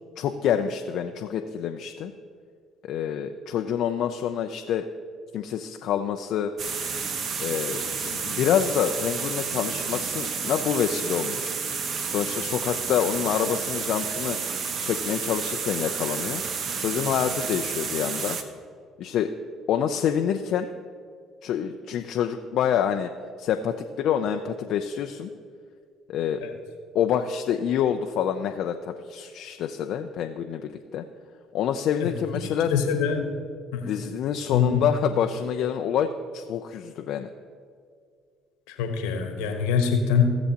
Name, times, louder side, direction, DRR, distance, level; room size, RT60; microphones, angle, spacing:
voice 1, 0.2-2.1 2.8-4.9 5.3-6.5 7.4-11.6 12.1-14.4 14.8-16.4 16.8-18.4 19.0-19.3 19.7-20.7 21.4-23.1 23.4-25.3 26.1-26.4 26.9-31.0 31.5-32.7 33.8-37.3, left 9 dB, 65° left, 5 dB, 0.4 m, -27 dB
sound 1, 6.6-18.4, right 5 dB, 55° right, 0.9 m, -30 dB
voice 2, 32.4-33.2 33.7-33.8 34.5-34.8 38.7-40.3, left 7 dB, 80° left, 5 dB, 1.1 m, -24 dB
17.0 x 7.0 x 2.9 m, 2.1 s
hypercardioid pair, 60°, 0 cm